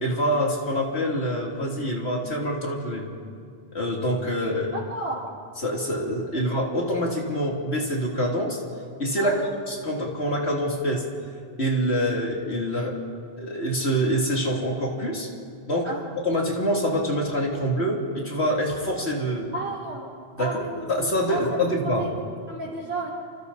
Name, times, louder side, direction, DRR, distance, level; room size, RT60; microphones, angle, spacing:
voice 1, 0.0-3.1 3.7-4.8 5.6-8.6 9.0-9.3 9.7-11.1 11.6-13.0 13.4-15.3 15.7-15.9 16.2-19.5 20.4-22.0, equal, 85° left, -1 dB, 3.4 m, -25 dB
voice 2, 4.7-5.2 9.2-9.5 15.8-16.0 19.5-20.1 20.4-20.9 21.3-22.1 22.5-23.1, right 2 dB, 90° right, -8 dB, 3.7 m, -32 dB
29.0 x 26.5 x 4.2 m, 2.2 s
omnidirectional pair, 1.1 m